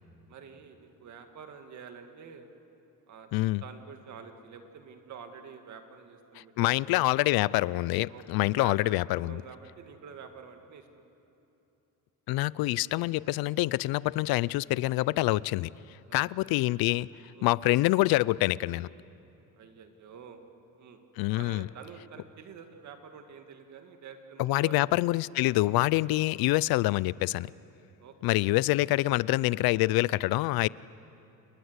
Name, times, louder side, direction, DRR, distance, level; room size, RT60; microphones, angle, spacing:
voice 1, 0.3-2.5 3.1-3.3 3.6-7.0 8.1-10.9 16.1-16.2 17.3-17.5 19.6-20.4 20.8-21.0 21.3-24.8 28.0-28.1, right 6 dB, 50° right, 2.1 m, -48 dB
voice 2, 3.3-3.6 6.6-9.4 12.3-15.7 16.1-17.1 17.4-18.9 21.2-21.7 24.4-27.5 28.2-30.7, left 18 dB, 80° left, 0.5 m, -26 dB
28.5 x 21.0 x 8.1 m
cardioid pair, 150°, 35 cm